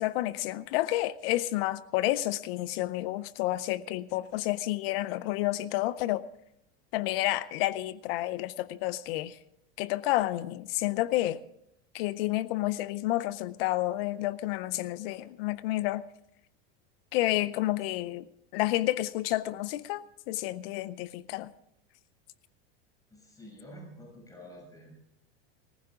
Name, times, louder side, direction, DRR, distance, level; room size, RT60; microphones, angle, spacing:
voice 1, 0.0-6.2 6.9-9.4 9.8-11.4 11.9-16.1 17.1-18.2 18.5-21.5, left 16 dB, 65° left, 17 dB, 0.7 m, -30 dB
voice 2, 23.1-24.9, equal, 10° left, -1 dB, 6.5 m, -49 dB
20.0 x 15.5 x 3.7 m, 0.75 s
supercardioid pair, 120°, 32 cm